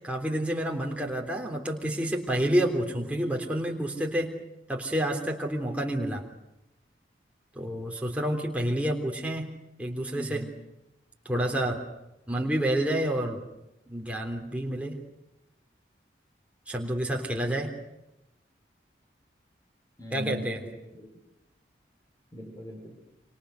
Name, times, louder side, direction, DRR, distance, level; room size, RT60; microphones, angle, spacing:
voice 1, 0.0-4.3 4.7-6.2 7.6-9.5 9.8-10.4 11.3-11.8 12.3-13.4 13.9-15.0 16.7-17.7 20.1-20.6, right 1 dB, 5° right, 0 dB, 3.5 m, -29 dB
voice 2, 10.1-10.5 12.4-12.9 20.0-21.1 22.3-23.0, equal, 20° left, 2 dB, 4.4 m, -40 dB
29.0 x 26.5 x 6.5 m, 0.92 s
head